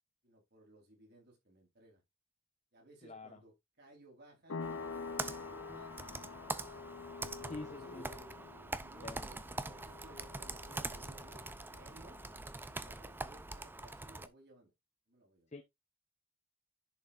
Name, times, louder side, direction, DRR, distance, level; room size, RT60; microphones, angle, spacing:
voice 1, 0.2-2.0 2.7-4.6 5.3-6.0 7.4-8.3 8.8-12.2 12.6-14.7 15.1-15.5, right 1 dB, 50° right, 4.3 m, -59 dB
voice 2, 3.0-3.4 7.5-8.1 9.0-9.3 15.5-15.6, left 2 dB, 35° left, 0.9 m, -46 dB
sound 1, 4.5-12.8, left 4 dB, 65° left, 0.6 m, -48 dB
Computer keyboard, 4.6-14.3, right 2 dB, 10° right, 0.4 m, -44 dB
10.5 x 5.4 x 2.6 m
head